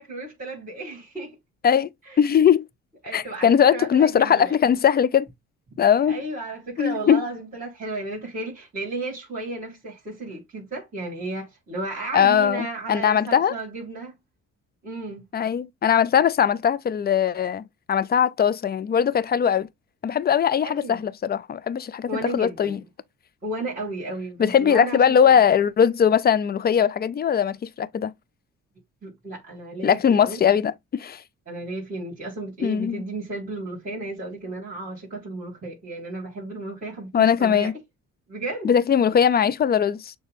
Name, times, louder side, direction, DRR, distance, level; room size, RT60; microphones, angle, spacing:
voice 1, 0.0-1.4 2.0-2.2 3.0-4.5 6.1-14.2 14.8-15.2 20.6-21.0 22.1-22.8 23.4-25.3 29.0-30.6 31.5-37.7 38.3-38.7 39.1-39.2, right 2 dB, 25° right, 3.2 m, -34 dB
voice 2, 2.2-2.7 3.1-5.3 5.8-6.2 6.8-7.2 12.1-13.5 15.3-19.7 20.0-22.8 24.4-28.1 29.8-31.2 32.6-33.0 37.1-37.7 38.6-40.1, left 8 dB, 35° left, 0.4 m, -20 dB
6.4 x 2.2 x 3.3 m
cardioid pair, 90°, 30 cm